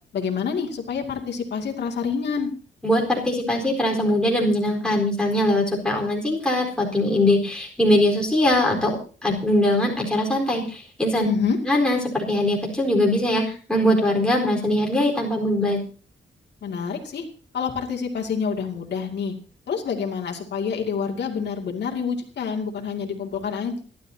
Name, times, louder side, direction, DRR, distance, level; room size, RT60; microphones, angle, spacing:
voice 1, 0.1-2.5 11.2-11.6 16.6-17.3 17.5-19.3 19.7-23.8, left 6 dB, 60° left, 0 dB, 2.4 m, -27 dB
voice 2, 2.8-9.0 9.2-11.3 11.7-13.4 13.7-15.8, left 1 dB, 5° left, -1 dB, 4.2 m, -21 dB
28.0 x 12.0 x 2.8 m, 0.38 s
wide cardioid pair, 175°, 19 cm